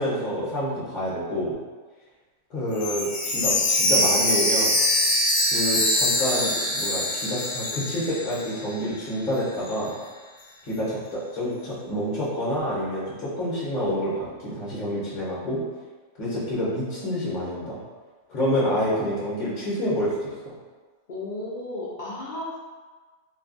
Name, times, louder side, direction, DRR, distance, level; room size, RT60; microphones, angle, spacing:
voice 1, 0.0-1.5 2.5-4.7 5.5-9.9 10.7-15.6 16.2-17.8 18.3-20.3, equal, 40° left, -8 dB, 0.9 m, -28 dB
Chime, 2.7-8.7 9.0-9.1 9.7-9.8, left 1 dB, 75° left, 1.0 m, -23 dB
voice 2, 21.1-22.6, left 2 dB, 55° left, -8 dB, 0.5 m, -34 dB
3.2 x 2.2 x 2.5 m, 1.4 s
omnidirectional pair, 1.3 m